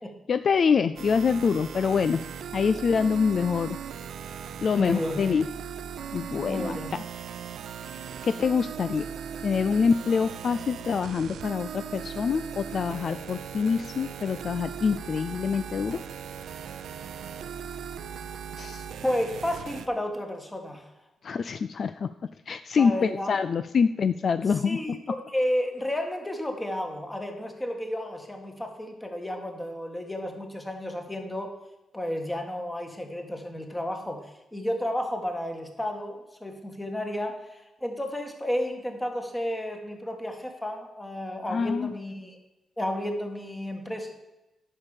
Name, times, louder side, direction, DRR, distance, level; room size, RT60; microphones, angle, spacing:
voice 1, 0.3-2.2 2.5-3.8 4.6-5.5 6.1-7.0 7.9-9.1 9.4-16.0 18.6-18.9 21.2-22.1 22.5-24.8 41.5-41.9, left 6 dB, 50° left, 11 dB, 0.3 m, -25 dB
sound 1, 1.0-19.9, right 8 dB, 80° right, 0.6 m, -38 dB
voice 2, 4.7-5.2 6.5-6.9 19.0-20.9 22.8-23.3 24.6-31.5 31.9-34.2 34.5-42.4 42.8-44.1, left 1 dB, 10° left, 3 dB, 1.6 m, -32 dB
10.5 x 5.3 x 7.1 m, 0.98 s
cardioid pair, 115°, 0 cm